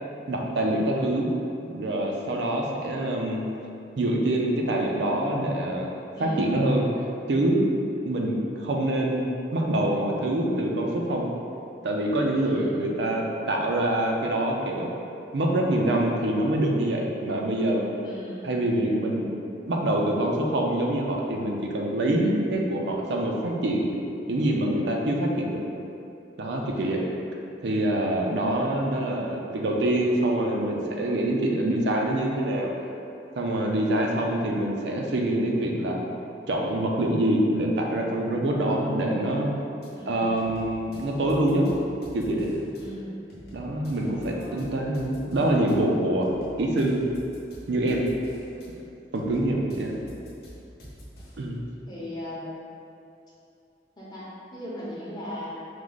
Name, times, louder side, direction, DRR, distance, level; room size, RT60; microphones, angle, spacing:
voice 1, 0.3-1.3 1.6-3.4 4.0-5.9 6.2-6.8 7.3-7.7 8.0-11.3 11.8-14.9 15.3-17.8 18.4-19.3 19.7-23.9 24.3-25.6 26.4-27.0 27.6-32.7 33.4-36.1 36.5-39.5 40.1-41.7 42.1-42.5 43.5-46.3 46.6-47.0 47.7-48.1 49.1-50.0 51.4-51.6, right 1 dB, 75° right, -1 dB, 0.5 m, -25 dB
voice 2, 6.1-6.5 12.3-12.9 18.0-18.5 26.7-27.0 40.0-40.4 42.8-43.1 44.0-44.7 49.3-49.8 51.9-52.6 54.0-55.5, equal, 25° left, -8 dB, 0.8 m, -38 dB
sound 1, 39.8-39.9 40.4-42.8 43.3-45.8 46.2-48.7 49.2-51.5, equal, 60° left, 0.9 m, -47 dB
4.6 x 2.1 x 3.8 m, 2.7 s
head